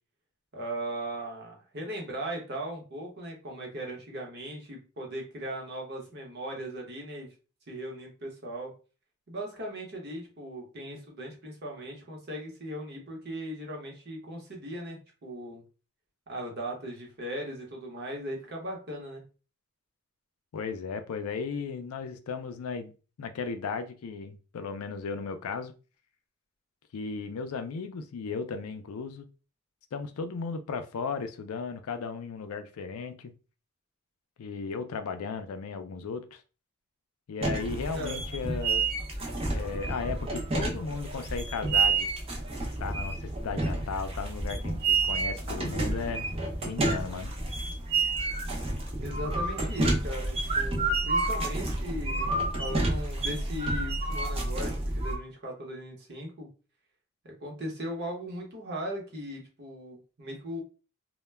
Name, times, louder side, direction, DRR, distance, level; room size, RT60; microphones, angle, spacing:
voice 1, 0.5-7.3 7.7-8.7 9.3-15.6 16.3-19.2 37.9-38.2 49.0-56.5 57.2-60.6, equal, 50° right, 0.8 m, -38 dB
voice 2, 20.5-22.9 23.2-25.7 26.9-29.3 29.9-33.3 34.4-36.4 37.3-38.9 39.5-42.1 42.8-46.3 46.6-47.3, left 5 dB, 80° left, 0.4 m, -35 dB
sound 1, 37.4-55.2, right 3 dB, 25° right, 0.5 m, -29 dB
2.2 x 2.1 x 3.2 m
head